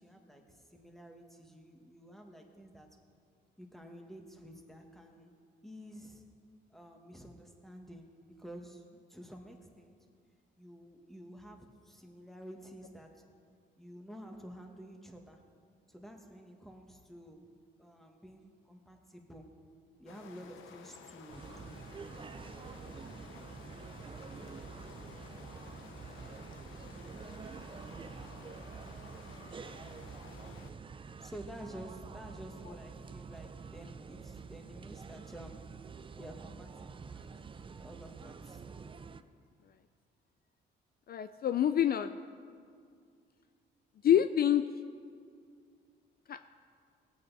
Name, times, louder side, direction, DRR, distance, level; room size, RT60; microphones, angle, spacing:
voice 1, 0.0-2.9 3.6-5.4 5.6-6.2 6.7-8.1 8.4-9.9 10.6-13.3 13.8-15.4 15.9-17.5 17.8-19.6 20.0-22.2 31.2-35.7 36.2-38.6, equal, ahead, 3 dB, 1.5 m, -51 dB
sound 1, 20.1-30.7, left 6 dB, 85° left, 0.9 m, -53 dB
sound 2, 21.3-39.2, right 5 dB, 25° right, 0.5 m, -47 dB
voice 2, 41.1-42.2 44.0-44.6 46.3-46.4, left 10 dB, 50° left, 11 dB, 0.4 m, -26 dB
18.5 x 8.7 x 4.1 m, 2.2 s
cardioid pair, 90°, 20 cm